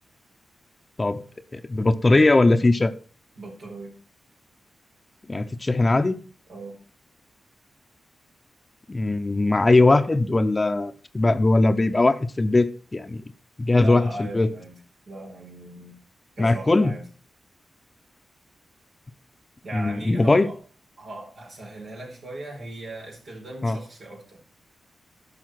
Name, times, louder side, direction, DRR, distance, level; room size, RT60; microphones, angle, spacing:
voice 1, 1.5-2.9 5.3-6.2 8.9-13.2 13.6-14.5 16.4-16.9 19.7-20.5 23.6-23.8, left 2 dB, 35° left, 0.9 m, -20 dB
voice 2, 3.4-3.9 6.5-6.8 13.8-16.0 16.4-17.1 19.6-20.6 21.0-24.4, right 1 dB, 70° right, 4.3 m, -39 dB
11.0 x 5.8 x 5.9 m
supercardioid pair, 40°, 0 cm